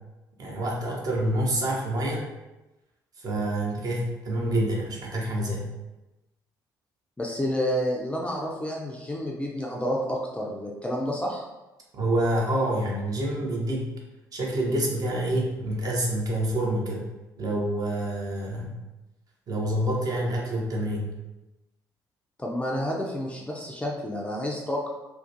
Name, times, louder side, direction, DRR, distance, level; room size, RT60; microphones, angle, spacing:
voice 1, 0.4-2.2 3.2-5.7 11.9-13.9 14.3-17.0 17.4-18.8 19.5-21.1, right 1 dB, 40° right, -2 dB, 0.6 m, -27 dB
voice 2, 7.2-11.4 22.4-24.9, equal, 10° left, -2 dB, 0.4 m, -29 dB
2.4 x 2.1 x 2.7 m, 1.0 s
figure-of-eight pair, 50°, 10 cm